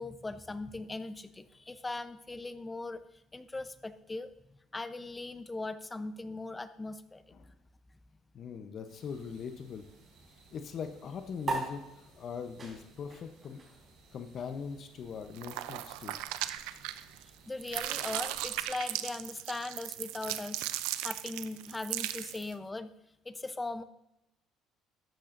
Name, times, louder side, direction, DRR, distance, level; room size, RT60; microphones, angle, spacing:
voice 1, 0.0-3.0 3.3-7.2 17.5-20.7 21.0-22.9 23.2-23.8, left 2 dB, 15° left, 12 dB, 0.7 m, -39 dB
voice 2, 8.3-9.9 10.3-13.6 14.1-16.2, left 6 dB, 50° left, 7 dB, 0.8 m, -41 dB
sound 1, 8.9-18.7, right 3 dB, 75° right, 3.8 m, -60 dB
sound 2, 11.4-18.2, right 3 dB, 35° right, 4.1 m, -43 dB
sound 3, 15.3-17.3 17.6-22.5, right 14 dB, 90° right, 0.5 m, -37 dB
13.0 x 10.5 x 2.6 m, 0.90 s
supercardioid pair, 95°, 0 cm